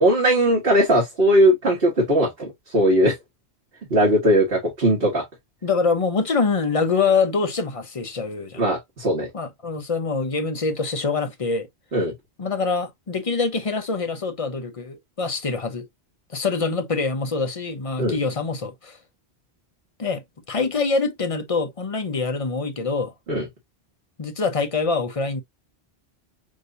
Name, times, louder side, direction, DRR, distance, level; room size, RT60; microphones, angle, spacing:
voice 1, 0.0-3.1 3.9-5.2 8.6-9.3 11.9-12.1 18.0-18.2 23.3-23.4, equal, 65° right, 1.7 m, -19 dB
voice 2, 5.6-8.7 9.3-11.7 12.4-15.8 16.3-19.0 20.0-23.1 24.2-25.4, left 4 dB, 35° left, 0.8 m, -25 dB
6.2 x 2.7 x 2.5 m
omnidirectional pair, 1.1 m